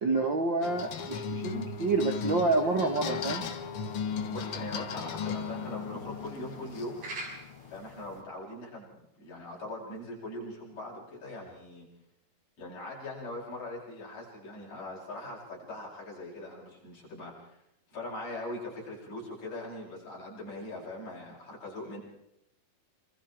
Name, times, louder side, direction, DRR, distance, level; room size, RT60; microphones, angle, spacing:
voice 1, 0.0-3.5, right 3 dB, 45° right, 4 dB, 1.7 m, -28 dB
sound 1, 0.6-8.2, left 6 dB, 55° left, 1.8 m, -37 dB
sound 2, 1.7-8.0, right 2 dB, 65° right, 7.2 m, -49 dB
voice 2, 4.1-7.1 7.7-11.9 12.6-17.6 17.9-22.0, left 1 dB, 70° left, -4 dB, 9.8 m, -41 dB
26.5 x 26.5 x 4.6 m, 0.81 s
omnidirectional pair, 3.9 m